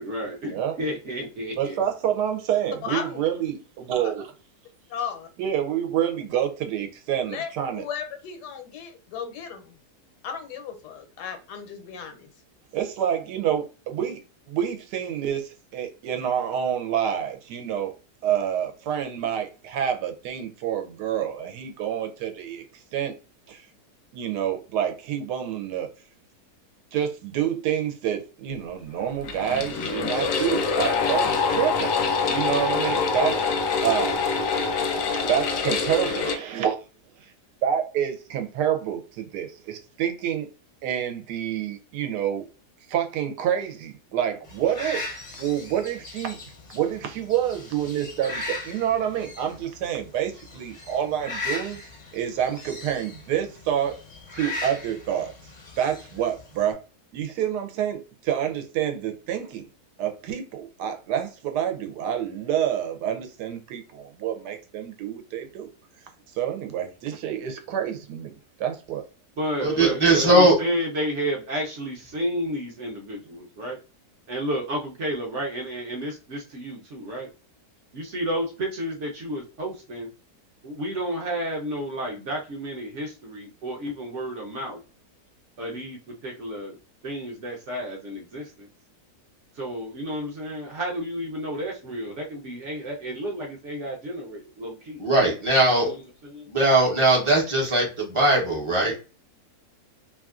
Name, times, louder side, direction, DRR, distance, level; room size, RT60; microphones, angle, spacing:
voice 1, 0.0-1.8 69.4-73.8 74.3-77.3 77.9-80.1 80.6-84.8 85.6-86.8 87.0-88.7 89.5-95.0 95.9-96.0 96.3-96.5, equal, 60° right, 0.8 m, -31 dB
voice 2, 1.6-3.6 3.8-4.2 5.4-7.8 12.7-14.2 14.5-17.9 18.2-23.1 23.5-23.6 24.1-25.9 26.9-31.9 32.3-33.4 33.8-34.2 34.5-34.9 35.3-36.7 37.6-40.5 40.8-42.4 42.9-46.4 46.7-51.8 52.1-54.0 54.3-55.3 55.8-56.8 57.1-59.6 60.0-65.7 66.3-69.0, right 9 dB, 90° right, 1.2 m, -28 dB
voice 3, 2.8-3.3 4.0-4.1 4.9-5.3 7.3-9.7 10.2-12.3, left 7 dB, 85° left, 1.2 m, -35 dB
sound 1, 29.2-36.4, left 5 dB, 70° left, 0.8 m, -25 dB
sound 2, 44.5-56.7, left 3 dB, 45° left, 0.5 m, -38 dB
voice 4, 69.6-70.6 95.0-95.9 96.5-98.9, right 2 dB, 30° right, 0.6 m, -19 dB
2.8 x 2.4 x 2.3 m
omnidirectional pair, 1.7 m